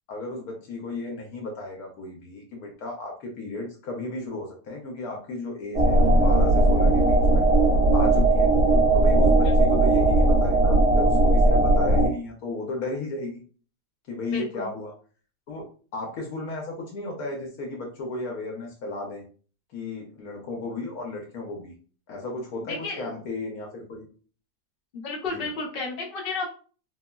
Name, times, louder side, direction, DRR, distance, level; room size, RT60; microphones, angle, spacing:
voice 1, 0.1-7.5 7.9-8.5 8.9-13.4 14.1-14.9 15.5-15.6 15.9-19.2 19.7-21.7 22.1-24.1 25.3-25.5, left 2 dB, 70° left, 1 dB, 1.0 m, -34 dB
sound 1, 5.7-12.1, right 2 dB, 50° right, 1.4 m, -18 dB
voice 2, 14.3-14.7 22.7-23.1 24.9-26.5, left 4 dB, 50° left, -1 dB, 0.7 m, -32 dB
3.6 x 2.0 x 2.2 m, 0.40 s
omnidirectional pair, 1.8 m